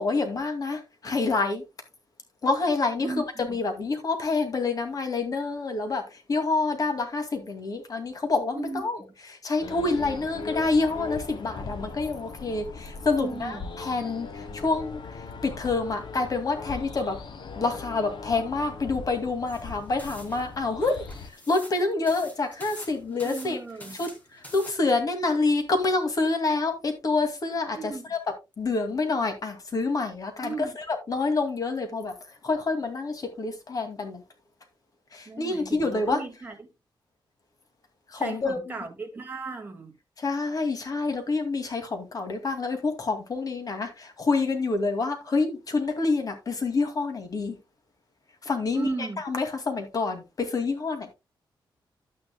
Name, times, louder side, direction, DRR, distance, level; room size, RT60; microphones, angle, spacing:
voice 1, 0.0-1.6 2.4-6.0 6.3-9.0 9.3-15.0 15.4-17.2 17.6-20.9 21.5-23.6 24.0-24.1 24.5-28.2 28.6-32.1 32.4-34.2 35.1-36.2 38.1-38.6 40.2-47.6 48.5-48.9 49.3-51.1, left 3 dB, 45° left, 2.3 m, -27 dB
voice 2, 3.0-3.6 8.5-9.1 13.2-13.8 23.2-24.0 27.7-28.1 30.4-30.7 35.3-36.7 38.1-40.0 48.7-49.2, right 3 dB, 20° right, 2.0 m, -36 dB
sound 1, 9.6-21.3, left 4 dB, 65° left, 1.3 m, -39 dB
sound 2, 19.5-24.7, left 1 dB, 20° left, 3.1 m, -47 dB
11.5 x 9.6 x 2.2 m
wide cardioid pair, 135°, 9 cm